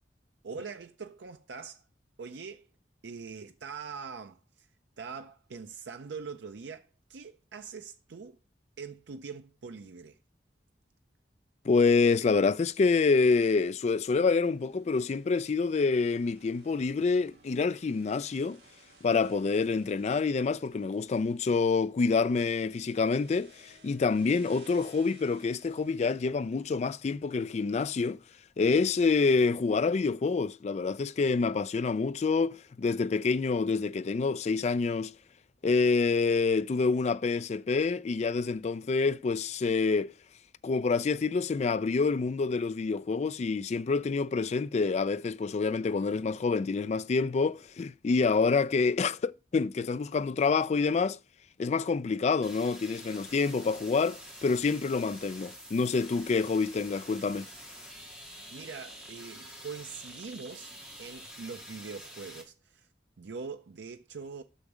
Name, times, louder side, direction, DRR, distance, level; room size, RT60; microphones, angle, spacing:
voice 1, 0.4-1.8 2.2-2.7 3.0-4.7 5.0-8.4 8.8-10.2 58.5-60.7 61.0-62.9 63.2-64.4, right 5 dB, 85° right, 0.5 m, -43 dB
voice 2, 11.6-18.6 19.0-28.2 28.6-35.1 35.6-40.1 40.6-51.2 51.6-57.5, left 4 dB, 40° left, 0.3 m, -27 dB
sound 1, 13.7-27.9, right 2 dB, 70° right, 2.9 m, -61 dB
sound 2, 52.4-62.4, equal, 5° right, 1.8 m, -47 dB
6.1 x 5.1 x 6.5 m
head